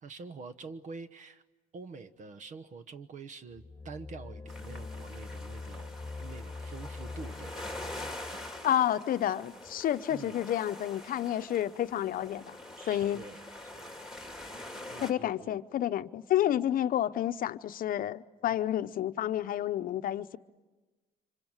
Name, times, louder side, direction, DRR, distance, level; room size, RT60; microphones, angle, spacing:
voice 1, 0.0-1.4 1.7-7.7 10.1-10.4 12.8-13.4 13.7-13.9 14.9-15.6, right 4 dB, 50° right, 1.1 m, -46 dB
sound 1, 3.5-8.6, left 3 dB, 15° left, 2.0 m, -43 dB
sound 2, 4.5-15.1, left 1 dB, 5° right, 2.7 m, -45 dB
voice 2, 8.6-12.6 12.9-13.3 15.0-20.4, left 11 dB, 55° left, 0.8 m, -30 dB
26.5 x 25.0 x 8.9 m
cardioid pair, 110°, 17 cm